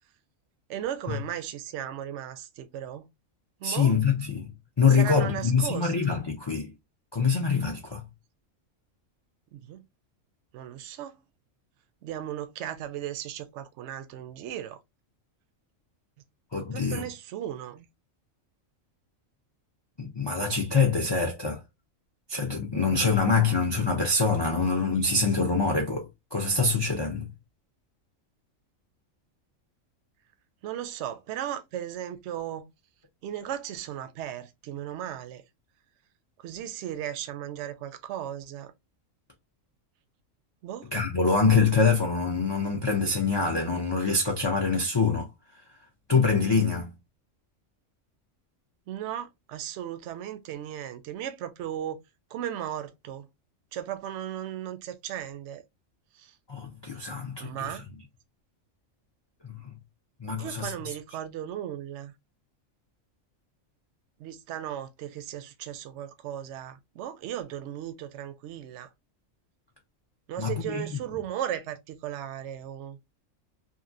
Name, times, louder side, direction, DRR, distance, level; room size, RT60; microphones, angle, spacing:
voice 1, 0.7-3.1 3.6-4.0 4.9-5.9 9.5-9.8 10.5-11.2 12.0-14.8 16.7-17.9 24.6-24.7 30.6-32.7 33.2-35.4 36.4-38.7 40.6-40.9 48.9-52.0 52.3-53.3 53.7-55.6 56.2-56.3 57.4-57.8 60.4-62.1 64.2-68.9 70.3-73.0, right 11 dB, 65° right, 0.8 m, -36 dB
voice 2, 3.6-4.5 4.8-6.7 7.1-8.0 16.5-17.0 20.0-21.6 22.3-27.3 40.9-45.3 46.1-46.9 56.5-57.8 59.4-59.6 60.2-60.9 70.4-70.9, left 4 dB, 40° left, 0.4 m, -25 dB
2.9 x 2.6 x 2.5 m
omnidirectional pair, 1.4 m